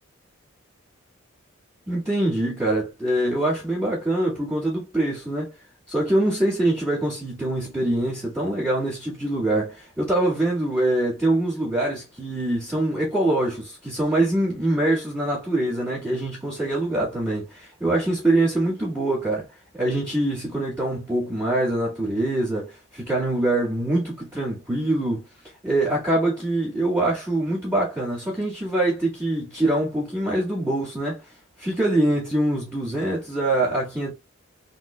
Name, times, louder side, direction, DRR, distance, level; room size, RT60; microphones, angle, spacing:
voice 1, 1.9-5.5 5.9-19.5 19.7-25.2 25.6-31.2 31.6-34.1, right 1 dB, 15° right, 2.0 m, -24 dB
4.0 x 3.7 x 2.3 m
head